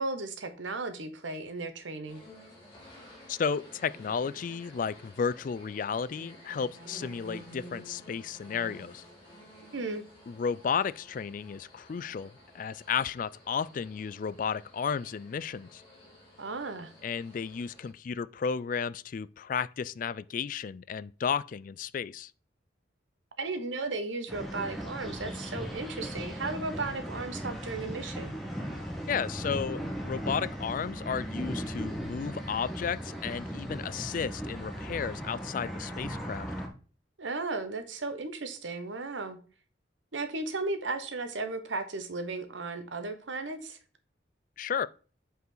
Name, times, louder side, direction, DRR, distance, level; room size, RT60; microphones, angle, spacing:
voice 1, 0.0-2.2 9.7-10.0 16.4-16.9 23.4-28.3 37.2-39.4 40.1-43.8, right 3 dB, 90° right, 1.2 m, -35 dB
sound 1, 2.1-17.9, equal, 25° left, 2.7 m, -52 dB
voice 2, 3.3-9.0 10.3-15.8 17.0-22.3 29.1-36.5 44.6-44.9, left 6 dB, 45° left, 0.3 m, -33 dB
sound 2, 24.3-36.7, equal, ahead, 1.4 m, -37 dB
8.2 x 4.8 x 3.9 m
head